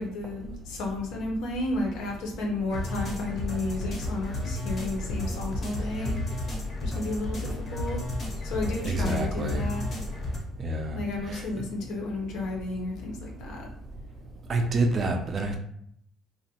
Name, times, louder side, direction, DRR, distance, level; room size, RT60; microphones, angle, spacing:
voice 1, 0.0-6.1 6.8-8.0 8.4-9.9 10.9-13.7, left 2 dB, 75° left, 0 dB, 0.6 m, -32 dB
sound 1, 2.7-10.4, left 1 dB, 35° left, 0.6 m, -32 dB
voice 2, 8.8-9.7 10.6-11.0 11.3-11.4 14.5-15.6, right 2 dB, 30° right, 4 dB, 0.3 m, -27 dB
2.5 x 2.1 x 2.7 m, 0.69 s
cardioid pair, 160°, 0 cm